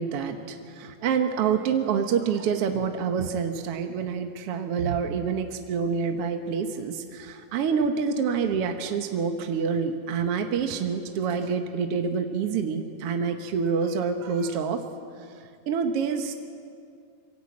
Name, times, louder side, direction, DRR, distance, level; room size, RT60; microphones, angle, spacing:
voice 1, 0.0-14.8 15.2-15.3 15.7-16.3, right 6 dB, 60° right, 5 dB, 1.7 m, -27 dB
26.5 x 24.0 x 8.6 m, 2.3 s
omnidirectional pair, 4.0 m